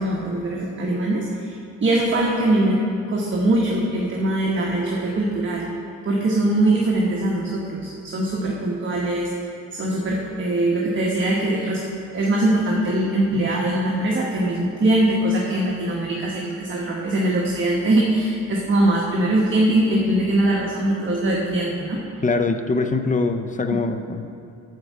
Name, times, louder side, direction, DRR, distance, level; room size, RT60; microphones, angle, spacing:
voice 1, 0.0-2.8 3.1-5.7 6.0-9.3 9.7-11.8 12.1-22.0, right 1 dB, 40° right, -2 dB, 1.2 m, -22 dB
voice 2, 22.2-24.3, left 3 dB, 25° left, 8 dB, 0.6 m, -23 dB
10.0 x 4.6 x 7.2 m, 2.5 s
cardioid pair, 90°, 30 cm